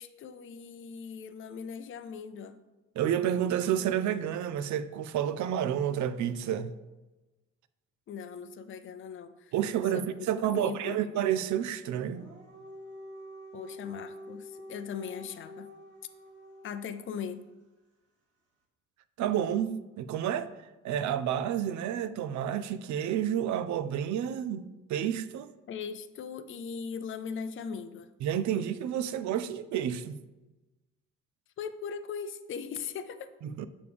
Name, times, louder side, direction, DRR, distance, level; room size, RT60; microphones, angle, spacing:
voice 1, 0.0-2.6 8.1-9.5 9.9-11.0 13.5-15.7 16.6-17.4 25.7-28.1 31.6-33.3, left 6 dB, 45° left, 0.5 m, -39 dB
voice 2, 3.0-6.7 9.5-12.3 19.2-20.5 20.8-25.5 28.2-30.2 33.4-33.7, right 10 dB, 70° right, 0.5 m, -30 dB
Dog, 11.9-17.1, equal, 55° right, 1.7 m, -47 dB
6.8 x 5.0 x 3.4 m
cardioid pair, 90°, 30 cm